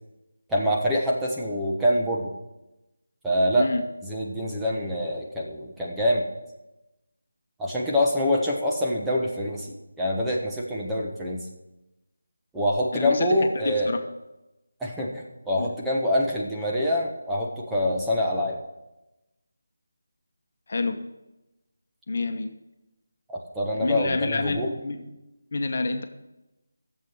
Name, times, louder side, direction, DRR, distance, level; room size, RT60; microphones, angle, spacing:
voice 1, 0.5-2.3 3.2-3.7 4.0-6.2 7.6-11.4 12.5-13.9 14.8-18.6 23.3-24.7, equal, 5° right, -5 dB, 1.2 m, -25 dB
voice 2, 12.9-14.0 15.6-15.7 20.7-21.0 22.1-22.5 23.8-25.0 25.5-26.0, left 3 dB, 50° left, 5 dB, 1.2 m, -27 dB
13.5 x 7.4 x 6.4 m, 0.99 s
figure-of-eight pair, 160°, 0 cm